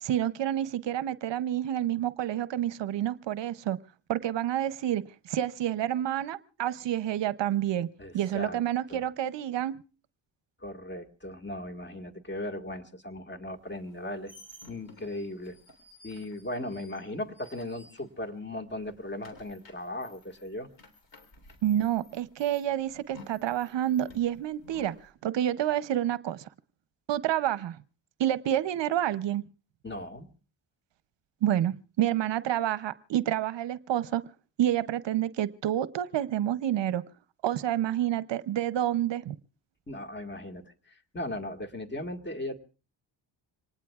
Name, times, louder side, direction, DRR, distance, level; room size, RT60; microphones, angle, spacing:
voice 1, 0.0-3.8 4.1-7.9 8.1-9.8 21.6-26.4 27.1-27.8 28.2-29.4 31.4-34.2 34.6-37.0 37.4-39.4, right 11 dB, 60° right, 0.7 m, -28 dB
voice 2, 8.0-8.6 8.9-9.0 10.6-14.3 14.7-15.6 16.0-20.7 29.8-30.3 39.9-42.6, left 1 dB, 20° left, 1.8 m, -37 dB
sound 1, 13.8-18.4 18.7-25.1, left 2 dB, 60° left, 3.6 m, -54 dB
26.0 x 19.0 x 2.4 m
cardioid pair, 85°, 48 cm